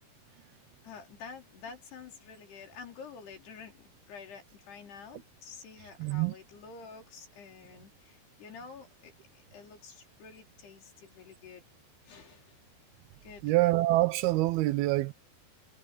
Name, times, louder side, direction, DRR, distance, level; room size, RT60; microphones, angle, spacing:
voice 1, 0.8-11.6 12.0-12.6 13.2-13.6, left 5 dB, 70° left, 6.1 m, -49 dB
voice 2, 6.0-6.3 13.4-15.1, right 18 dB, 80° right, 2.4 m, -26 dB
omnidirectional pair, 4.8 m